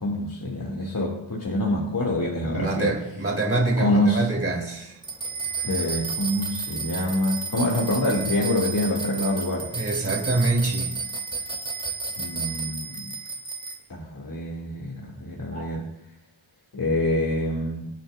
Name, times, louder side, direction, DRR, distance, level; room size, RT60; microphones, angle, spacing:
voice 1, 0.0-2.9 3.8-4.3 5.6-9.7 12.2-13.1 13.9-15.9 16.7-17.9, left 1 dB, 40° left, -2 dB, 2.6 m, -26 dB
voice 2, 2.4-5.0 9.7-11.0 15.5-15.7, right 2 dB, 25° right, -2 dB, 3.9 m, -25 dB
sound 1, 5.0-13.7, right 4 dB, 10° left, 2.9 m, -32 dB
25.5 x 9.0 x 2.5 m, 0.85 s
cardioid pair, 80°, 50 cm